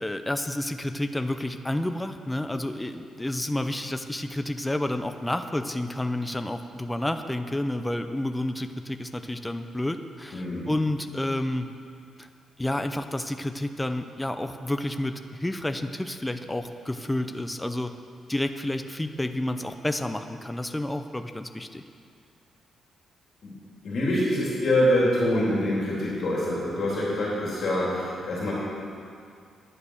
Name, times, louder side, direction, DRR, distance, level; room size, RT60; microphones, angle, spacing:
voice 1, 0.0-11.7 12.2-12.3 12.6-17.9 18.3-21.8, left 1 dB, 5° left, 8 dB, 0.4 m, -30 dB
voice 2, 10.3-10.7 23.4-23.5 23.8-28.5, left 1 dB, 55° left, -6 dB, 3.0 m, -25 dB
10.0 x 9.0 x 6.4 m, 2.3 s
wide cardioid pair, 165°, 0 cm